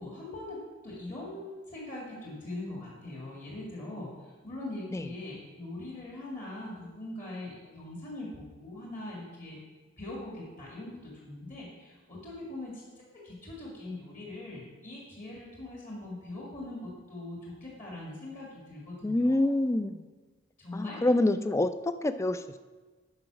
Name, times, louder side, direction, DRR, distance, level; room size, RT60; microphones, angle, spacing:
voice 1, 0.0-9.6 10.0-19.5 20.6-21.0, left 2 dB, 40° left, -4 dB, 2.0 m, -42 dB
voice 2, 19.0-20.1 20.7-22.6, left 1 dB, 15° left, 11 dB, 0.3 m, -27 dB
9.7 x 4.9 x 6.1 m, 1.4 s
head